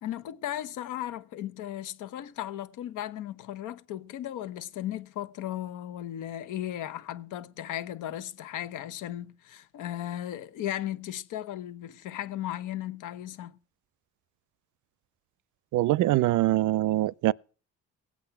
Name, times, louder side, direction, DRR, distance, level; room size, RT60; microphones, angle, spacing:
voice 1, 0.0-13.6, left 12 dB, 90° left, 1.1 m, -36 dB
voice 2, 15.7-17.3, right 16 dB, 75° right, 0.5 m, -23 dB
17.0 x 8.5 x 5.9 m
cardioid pair, 90°, 30 cm